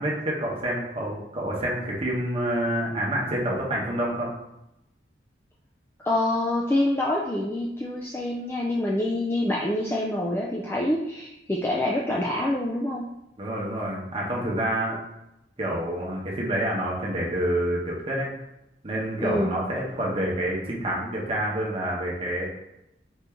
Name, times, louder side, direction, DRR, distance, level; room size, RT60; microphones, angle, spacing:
voice 1, 0.0-4.3 13.4-15.0 15.6-18.3 18.8-22.5, right 1 dB, 30° right, -3 dB, 1.0 m, -28 dB
voice 2, 6.1-13.0 19.2-19.6, left 1 dB, 15° left, -3 dB, 0.3 m, -26 dB
4.3 x 2.6 x 3.5 m, 0.87 s
head